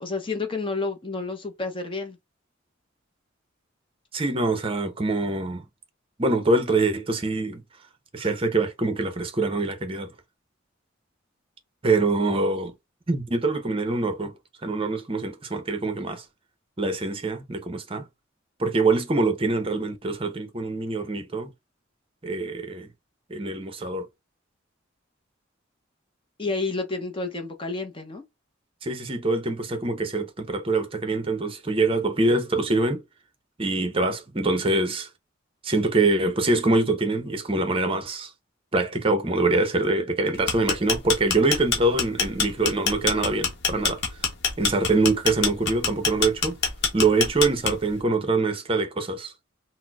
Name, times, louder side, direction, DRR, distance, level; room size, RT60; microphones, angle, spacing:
voice 1, 0.0-2.2 26.4-28.2, left 3 dB, 25° left, 0.6 m, -30 dB
voice 2, 4.1-5.6 6.2-7.6 8.1-10.1 11.8-12.7 13.1-14.3 14.6-16.2 16.8-18.1 18.6-21.5 22.2-22.9 23.3-24.1 28.8-33.0 33.6-35.1 35.6-38.3 38.7-44.0 44.6-46.6 46.9-49.3, right 2 dB, 30° right, 0.6 m, -24 dB
sound 1, 40.3-48.0, left 5 dB, 60° left, 0.8 m, -25 dB
4.2 x 2.0 x 2.2 m
head